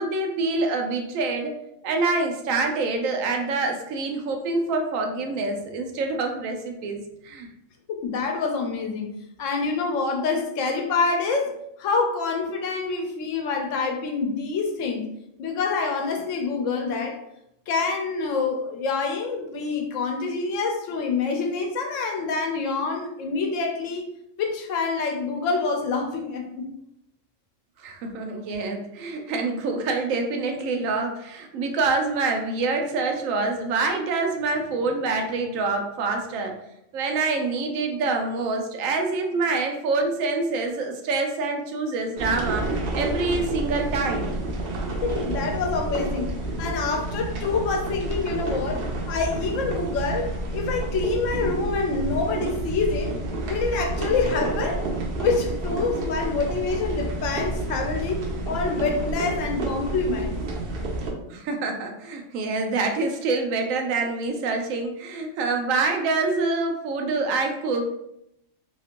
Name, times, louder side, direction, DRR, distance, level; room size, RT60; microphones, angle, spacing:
voice 1, 0.0-1.5 1.8-7.5 27.8-36.6 36.9-42.7 42.9-44.4 61.3-67.8, right 3 dB, 90° right, 4 dB, 1.0 m, -26 dB
voice 2, 7.9-9.1 9.4-11.5 11.8-15.1 15.4-17.2 17.7-24.1 24.4-26.7 45.0-46.3 46.6-48.8 49.1-53.2 53.5-54.8 55.2-60.4, left 4 dB, 75° left, 2 dB, 0.9 m, -26 dB
sound 1, 42.2-61.1, right 2 dB, 60° right, 0.6 m, -29 dB
2.9 x 2.5 x 2.8 m, 0.79 s
omnidirectional pair, 1.4 m